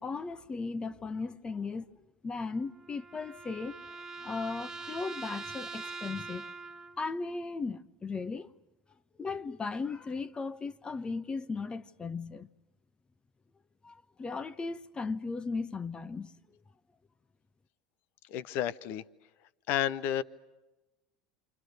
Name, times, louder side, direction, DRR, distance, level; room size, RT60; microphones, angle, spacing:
voice 1, 0.0-3.8 4.2-6.5 7.0-8.5 9.2-12.5 13.8-16.3, left 4 dB, 25° left, 1.1 m, -37 dB
sound 1, 2.3-7.1, right 4 dB, 20° right, 1.4 m, -43 dB
voice 2, 18.3-19.0 19.7-20.2, left 10 dB, 60° left, 0.9 m, -31 dB
28.5 x 27.5 x 6.5 m
hypercardioid pair, 80°, 4 cm